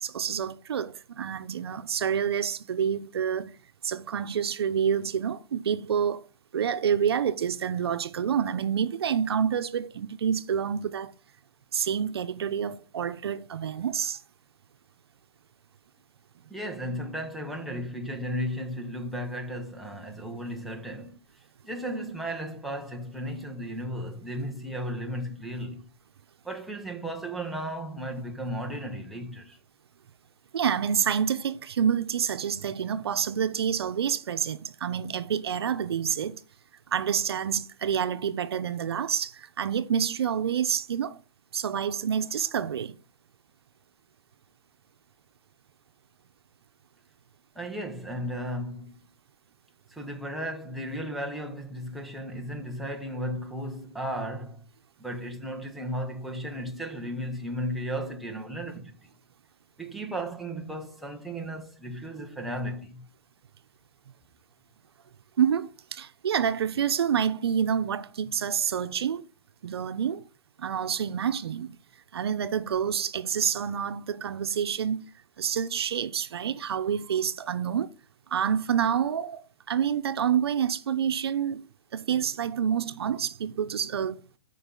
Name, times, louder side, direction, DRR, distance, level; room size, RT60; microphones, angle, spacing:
voice 1, 0.0-3.6 3.8-6.2 6.5-11.1 11.7-14.2 30.5-36.4 36.9-41.2 41.5-43.0 65.4-69.3 69.6-70.2 70.6-71.8 72.1-75.0 75.4-77.9 78.3-84.2, right 8 dB, 75° right, 0.9 m, -28 dB
voice 2, 16.5-21.2 21.6-25.9 26.4-29.6 47.5-48.9 49.9-54.6 55.0-58.9 59.8-63.0, equal, ahead, 0.9 m, -35 dB
14.0 x 5.5 x 3.9 m
hypercardioid pair, 165°, 13 cm